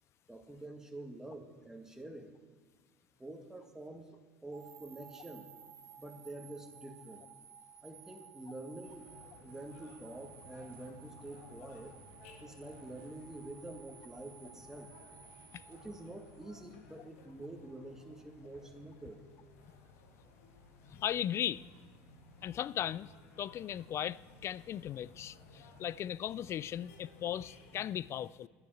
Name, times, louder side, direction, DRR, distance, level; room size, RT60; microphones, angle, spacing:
voice 1, 0.3-2.4 3.2-5.5 6.0-7.2 7.8-9.1 9.4-11.9 12.4-14.9 15.7-19.2, right 2 dB, 10° right, 1.9 m, -47 dB
sound 1, 4.5-16.7, right 7 dB, 40° right, 2.1 m, -56 dB
sound 2, 8.8-27.9, left 3 dB, 90° left, 2.0 m, -58 dB
voice 2, 20.9-21.6 22.4-23.1 23.4-28.5, left 11 dB, 45° left, 0.4 m, -37 dB
11.0 x 10.5 x 7.9 m
supercardioid pair, 95°, 6 cm